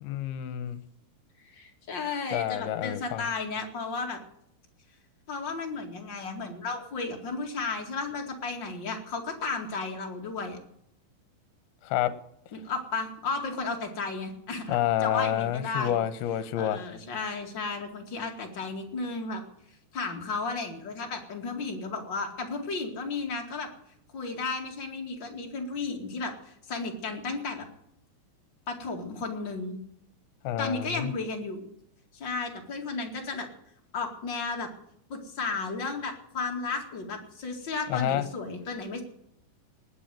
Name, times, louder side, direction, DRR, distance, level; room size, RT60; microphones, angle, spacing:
voice 1, 0.0-0.8 2.3-3.3 11.8-12.1 14.7-16.8 30.4-31.1 37.9-38.2, left 11 dB, 80° left, 14 dB, 2.9 m, -28 dB
voice 2, 1.5-4.2 5.3-10.6 12.5-16.0 16.6-19.4 19.9-23.7 24.1-27.7 28.7-29.8 30.6-31.7 32.1-33.5 33.9-34.7 35.1-39.0, left 4 dB, 35° left, 2 dB, 2.3 m, -34 dB
19.5 x 7.1 x 9.1 m, 0.74 s
omnidirectional pair, 4.6 m